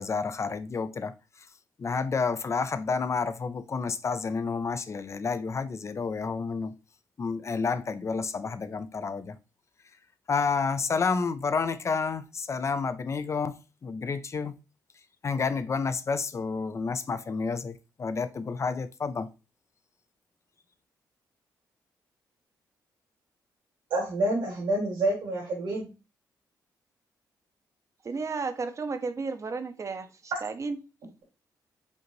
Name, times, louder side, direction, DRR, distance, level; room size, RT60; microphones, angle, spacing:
voice 1, 0.0-1.5 1.8-6.7 7.2-9.4 10.3-14.6 15.2-19.3, left 5 dB, 40° left, 0.5 m, -30 dB
voice 2, 23.9-25.9, right 1 dB, 85° right, 2.3 m, -28 dB
voice 3, 28.0-30.8, right 4 dB, 40° right, 0.7 m, -33 dB
5.1 x 2.5 x 3.1 m
cardioid pair, 70°, 8 cm